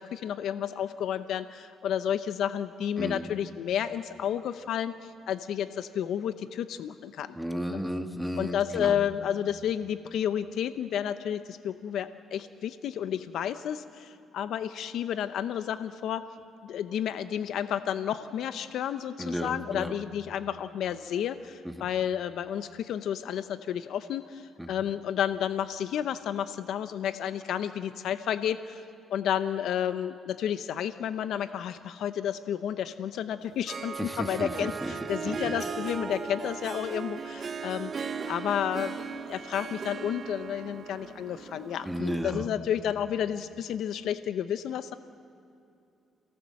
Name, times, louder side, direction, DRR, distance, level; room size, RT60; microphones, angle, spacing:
voice 1, 0.0-7.4 7.7-7.8 8.4-16.2 16.6-28.8 29.1-37.9 38.3-44.9, left 9 dB, 75° left, 11 dB, 0.7 m, -31 dB
voice 2, 3.0-3.3 7.4-9.0 19.2-19.9 21.8-21.9 24.6-24.7 34.0-34.9 35.3-35.5 41.8-42.5, equal, ahead, 5 dB, 1.7 m, -33 dB
Harp, 33.4-42.4, right 5 dB, 45° right, 1.0 m, -37 dB
27.5 x 18.0 x 7.7 m, 2.6 s
cardioid pair, 90°, 0 cm